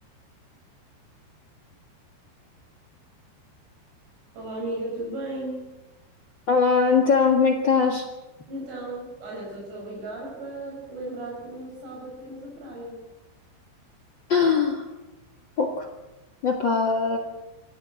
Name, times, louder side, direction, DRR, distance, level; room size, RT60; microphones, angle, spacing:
voice 1, 4.3-5.7 8.5-13.0, right 1 dB, 70° right, -2 dB, 7.9 m, -35 dB
voice 2, 6.5-8.1 14.3-14.9 15.6-15.9 16.4-17.2, left 5 dB, 85° left, 4 dB, 1.0 m, -21 dB
25.0 x 15.0 x 8.2 m, 1.0 s
omnidirectional pair, 5.1 m